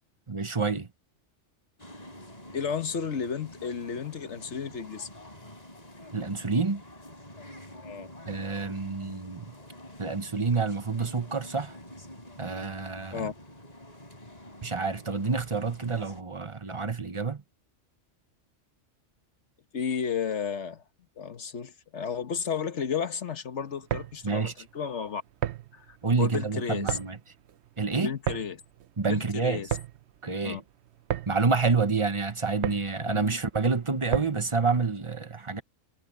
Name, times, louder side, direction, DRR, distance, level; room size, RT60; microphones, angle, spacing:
voice 1, 0.3-0.9 6.1-6.8 8.3-9.5 10.0-11.8 12.4-13.3 14.6-17.4 24.2-24.5 26.0-27.2 27.8-28.1 29.0-29.6 30.2-30.6 31.3-35.6, right 4 dB, 25° right, 1.1 m, -28 dB
sound 1, 1.8-16.2, left 1 dB, 30° left, 5.4 m, -47 dB
voice 2, 2.5-5.1 7.8-8.1 13.1-13.3 19.7-20.8 21.2-25.2 25.7-27.0 27.9-28.6 29.1-29.7 30.4-30.6 33.0-33.2, left 7 dB, 65° left, 1.5 m, -33 dB
sound 2, 23.7-34.6, right 11 dB, 65° right, 0.9 m, -36 dB
omnidirectional pair, 1.3 m